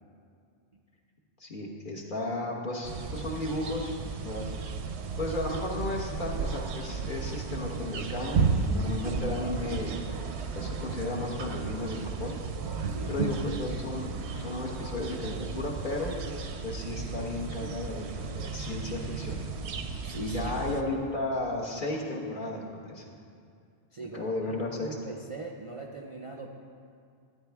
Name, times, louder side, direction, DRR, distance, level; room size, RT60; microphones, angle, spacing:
voice 1, 1.4-4.5 5.2-10.0 10.5-12.4 13.1-16.2 16.6-19.4 20.2-23.0 24.1-25.0, left 2 dB, 50° left, -2 dB, 1.4 m, -34 dB
sound 1, 2.8-20.8, right 5 dB, 90° right, 1.0 m, -34 dB
voice 2, 20.0-20.6 23.9-26.5, right 3 dB, 40° right, 1 dB, 0.5 m, -42 dB
13.5 x 9.0 x 3.5 m, 2.3 s
omnidirectional pair, 1.1 m